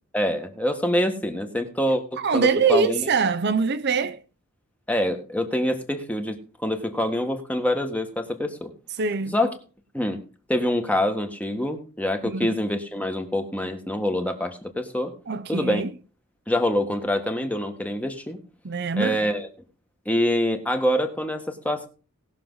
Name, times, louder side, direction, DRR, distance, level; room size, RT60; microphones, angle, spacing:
voice 1, 0.1-3.1 4.9-6.4 6.6-8.7 9.3-9.5 9.9-10.2 10.5-15.1 15.5-15.8 16.5-18.4 19.0-19.5 20.0-21.9, left 1 dB, 5° left, 1.5 m, -25 dB
voice 2, 2.2-4.2 9.0-9.3 12.3-12.6 15.3-15.9 18.6-19.2, right 5 dB, 50° right, 0.7 m, -23 dB
19.0 x 6.7 x 3.9 m
head